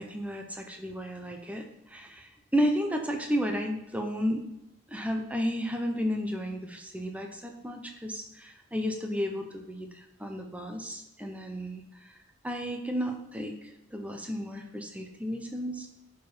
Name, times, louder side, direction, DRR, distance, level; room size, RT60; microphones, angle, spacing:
voice 1, 0.0-4.4 4.9-12.1 12.4-15.9, equal, 5° right, 3 dB, 0.8 m, -33 dB
11.0 x 4.6 x 5.1 m, 0.86 s
head